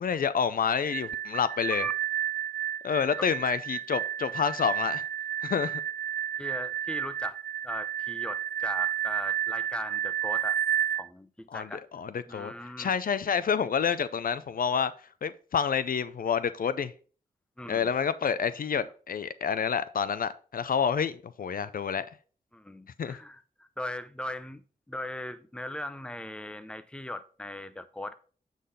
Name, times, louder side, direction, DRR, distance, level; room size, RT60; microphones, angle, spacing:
voice 1, 0.0-1.9 2.8-5.0 5.4-5.8 11.5-14.9 15.2-16.9 17.7-22.1 23.0-23.2, left 7 dB, 70° left, 0.5 m, -28 dB
sound 1, 0.9-11.0, right 10 dB, 80° right, 0.4 m, -31 dB
voice 2, 6.4-7.4 7.6-10.6 11.0-11.8 12.3-12.9 17.6-17.9 22.5-24.6 24.9-28.1, left 1 dB, 5° left, 0.7 m, -38 dB
8.3 x 4.0 x 5.3 m
cardioid pair, 65°, 15 cm